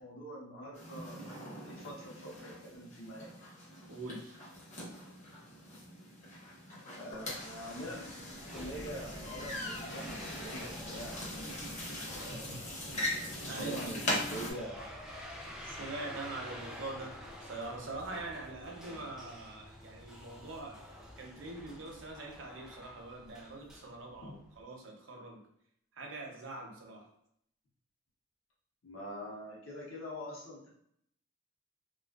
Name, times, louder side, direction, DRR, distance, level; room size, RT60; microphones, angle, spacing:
voice 1, 0.0-3.3 6.9-8.1 8.5-11.3 12.1-13.0 13.4-15.0 24.2-24.4 28.8-30.7, equal, 75° left, -4 dB, 0.7 m, -45 dB
sound 1, 0.7-14.5, left 1 dB, 35° left, 0.7 m, -41 dB
voice 2, 3.9-4.4 12.3-12.9 13.5-13.8 15.6-25.4 25.9-27.1, right 2 dB, 65° right, 1 dB, 0.6 m, -44 dB
sound 2, 7.1-24.6, equal, 5° right, 0.3 m, -49 dB
2.3 x 2.3 x 2.3 m, 0.71 s
head